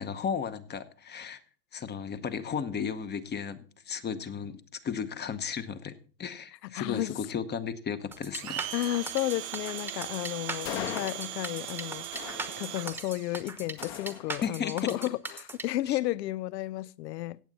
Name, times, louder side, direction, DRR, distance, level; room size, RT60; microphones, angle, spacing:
voice 1, 0.0-1.4 1.7-8.6 10.6-11.0 14.4-15.0 15.9-16.0, left 7 dB, 20° left, 0.9 m, -35 dB
voice 2, 6.6-7.2 8.7-17.4, left 16 dB, 80° left, 0.6 m, -33 dB
sound 1, 8.1-15.6, right 2 dB, 5° right, 1.0 m, -39 dB
Domestic sounds home sounds, 8.3-13.4, right 17 dB, 45° right, 1.0 m, -39 dB
sound 2, 10.7-11.7 12.1-13.1 13.8-14.8, left 10 dB, 55° left, 1.6 m, -41 dB
16.5 x 7.3 x 4.0 m
hypercardioid pair, 115°, 49 cm